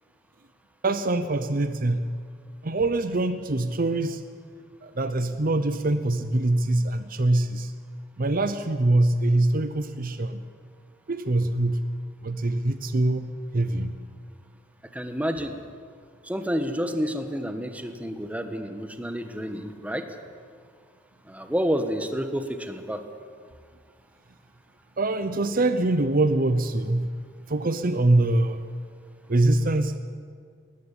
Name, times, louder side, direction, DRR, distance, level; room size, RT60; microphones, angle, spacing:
voice 1, 0.8-2.1 2.6-4.2 4.8-7.7 8.2-10.4 11.1-11.8 12.2-14.0 25.0-27.1 27.5-28.7 29.3-30.0, right 2 dB, 45° right, 10 dB, 0.8 m, -24 dB
voice 2, 14.9-15.6 16.2-20.1 21.3-23.0, equal, 5° right, 7 dB, 1.3 m, -29 dB
19.5 x 14.0 x 10.0 m, 2.1 s
head